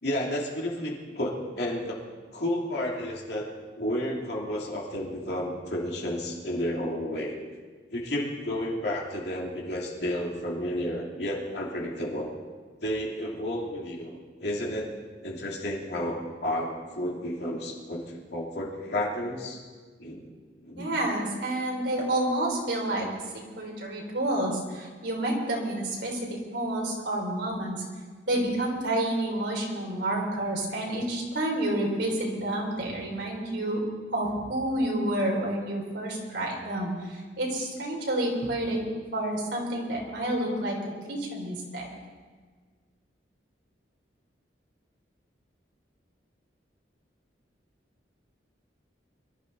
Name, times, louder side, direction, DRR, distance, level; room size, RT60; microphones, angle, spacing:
voice 1, 0.0-2.0 2.3-7.3 7.9-12.3 12.8-14.1 14.4-14.9 15.2-19.6 20.0-20.3 20.6-21.0, left 1 dB, 65° left, -3 dB, 2.8 m, -31 dB
voice 2, 20.8-23.1 23.6-27.8 28.3-33.8 34.1-38.9 39.1-40.8 41.1-41.9, right 1 dB, 75° right, -2 dB, 3.8 m, -29 dB
23.0 x 12.5 x 4.1 m, 1.5 s
head